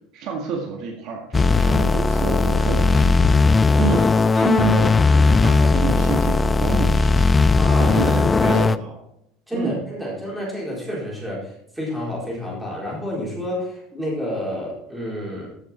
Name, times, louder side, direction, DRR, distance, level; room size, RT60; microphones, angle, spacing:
voice 1, 0.1-7.4 7.8-8.9 9.5-9.8, right 5 dB, 45° right, 1 dB, 1.8 m, -29 dB
sound 1, 1.3-8.8, left 3 dB, 10° left, 0.3 m, -17 dB
voice 2, 7.6-8.1 8.4-8.7 9.5-15.5, equal, 5° right, -5 dB, 4.2 m, -29 dB
14.0 x 6.9 x 4.5 m, 0.78 s
cardioid pair, 170°, 0 cm